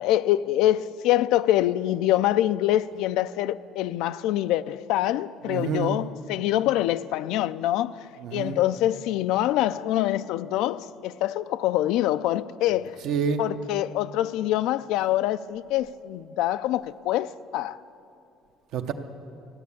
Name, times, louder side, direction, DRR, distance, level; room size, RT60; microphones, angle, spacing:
voice 1, 0.0-8.0 8.3-13.0 13.4-17.8, left 13 dB, 80° left, 0.3 m, -25 dB
voice 2, 5.4-6.0 8.2-8.6 13.0-13.4 18.7-18.9, right 6 dB, 70° right, 0.8 m, -28 dB
13.5 x 9.4 x 8.4 m
cardioid pair, 145°, 0 cm